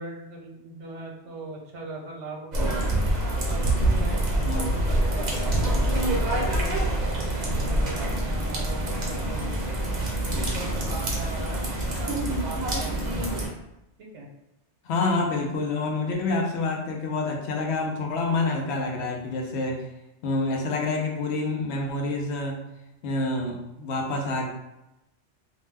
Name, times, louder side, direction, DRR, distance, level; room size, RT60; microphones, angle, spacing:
voice 1, 0.0-3.0 3.5-9.8 10.2-13.4 14.0-14.3, right 2 dB, 80° right, 0 dB, 1.0 m, -40 dB
sound 1, 2.5-13.5, right 1 dB, 45° right, 0.7 m, -26 dB
voice 2, 14.8-19.8 20.2-22.6 23.0-24.5, left 3 dB, 70° left, 1 dB, 0.8 m, -27 dB
2.6 x 2.2 x 3.2 m, 0.89 s
omnidirectional pair, 1.2 m